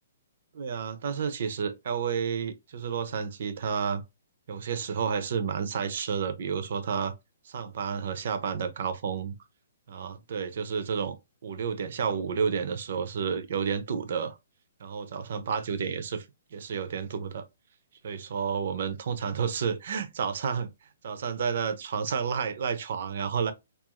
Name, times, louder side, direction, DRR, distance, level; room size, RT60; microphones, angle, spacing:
voice 1, 0.5-4.0 4.5-7.1 7.4-9.4 9.9-11.2 11.4-14.4 14.8-16.3 16.5-17.5 18.0-20.7 21.0-23.5, right 6 dB, 45° right, 0.4 m, -30 dB
2.4 x 2.3 x 2.9 m
hypercardioid pair, 175°, 0 cm